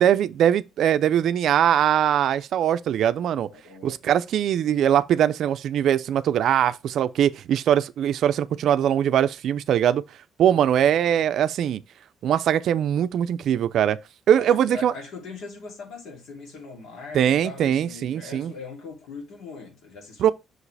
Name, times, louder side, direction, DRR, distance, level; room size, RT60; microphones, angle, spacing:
voice 1, 0.0-3.5 3.8-10.0 10.4-11.8 12.2-14.0 14.3-14.9 17.1-18.5 20.2-20.3, right 10 dB, 60° right, 0.5 m, -21 dB
voice 2, 3.5-4.0 14.3-20.3, left 4 dB, 75° left, 3.0 m, -40 dB
6.3 x 4.9 x 3.3 m
cardioid pair, 180°, 0 cm